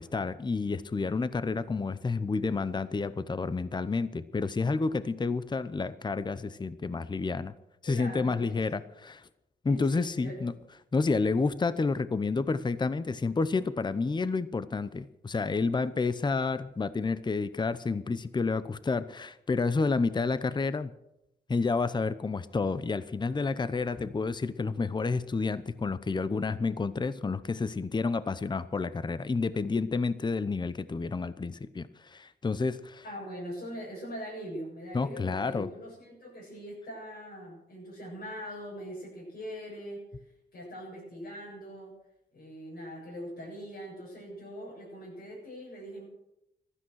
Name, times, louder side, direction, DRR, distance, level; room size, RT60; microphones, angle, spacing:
voice 1, 0.0-7.5 7.8-9.3 9.6-10.5 10.9-20.9 21.5-33.0 34.9-35.7, left 4 dB, 25° left, 15 dB, 0.8 m, -30 dB
voice 2, 7.9-8.6 9.7-10.5 33.0-40.0 40.5-41.9 42.3-46.1, equal, 65° left, -6 dB, 7.7 m, -42 dB
15.5 x 13.0 x 6.4 m, 0.84 s
cardioid pair, 85°, 18 cm